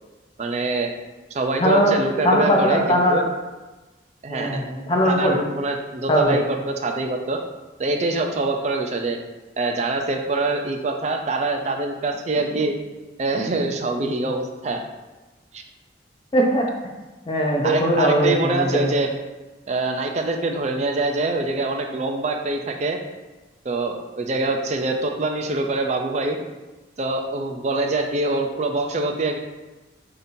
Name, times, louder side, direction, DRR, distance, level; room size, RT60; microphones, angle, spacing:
voice 1, 0.4-0.9 1.3-3.2 4.2-4.6 5.0-7.4 7.8-9.2 9.6-12.7 13.2-14.8 15.5-15.6 17.6-19.1 19.7-23.0 23.6-26.4 27.0-29.4, right 2 dB, 40° right, 4 dB, 0.4 m, -24 dB
voice 2, 1.6-2.0 2.2-3.2 4.3-5.4 6.1-6.4 16.3-16.7 17.3-18.9, equal, 25° left, 0 dB, 0.5 m, -20 dB
5.1 x 2.9 x 2.6 m, 1.1 s
head